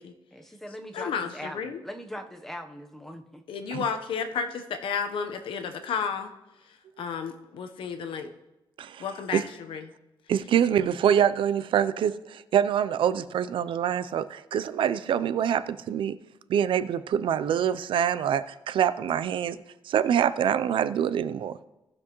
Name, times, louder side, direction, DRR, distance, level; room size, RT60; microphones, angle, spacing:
voice 1, 0.3-3.4, equal, 5° left, 5 dB, 0.9 m, -41 dB
voice 2, 0.9-1.8 3.5-6.3 7.0-8.3 9.0-9.9, left 6 dB, 75° left, 7 dB, 0.9 m, -32 dB
voice 3, 10.3-16.2 16.5-19.6 19.9-21.5, right 9 dB, 70° right, 14 dB, 0.5 m, -25 dB
17.5 x 6.1 x 3.0 m, 0.97 s
cardioid pair, 135°, 9 cm